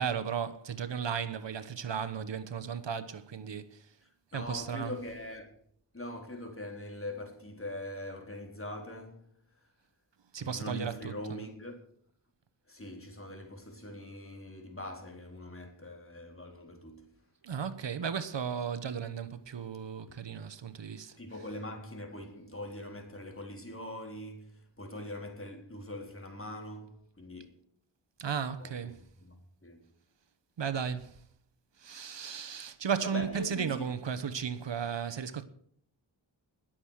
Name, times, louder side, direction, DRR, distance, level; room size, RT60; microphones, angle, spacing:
voice 1, 0.0-3.7 4.3-4.9 10.3-11.1 17.4-21.1 28.2-28.9 30.6-31.1 31.8-35.4, right 7 dB, 65° right, 1.2 m, -35 dB
voice 2, 4.0-5.5 5.9-9.3 10.4-11.8 12.7-17.1 21.2-27.6 28.6-29.9 33.0-34.0, left 1 dB, 25° left, 3.7 m, -42 dB
20.5 x 7.5 x 6.5 m
cardioid pair, 60°, 46 cm